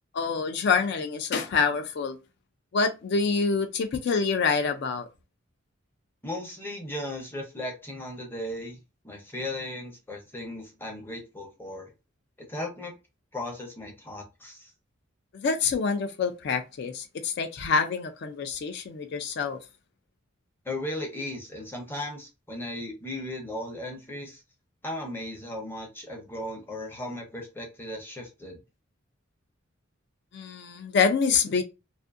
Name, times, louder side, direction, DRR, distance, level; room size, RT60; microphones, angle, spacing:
voice 1, 0.1-2.2 2.7-5.1 15.3-19.6 30.3-31.6, left 5 dB, 55° left, 0.3 m, -26 dB
voice 2, 6.2-8.8 9.0-11.9 12.5-12.9 13.3-14.7 20.6-24.4 24.8-28.6, left 1 dB, 10° left, 0.6 m, -36 dB
2.5 x 2.4 x 2.4 m
head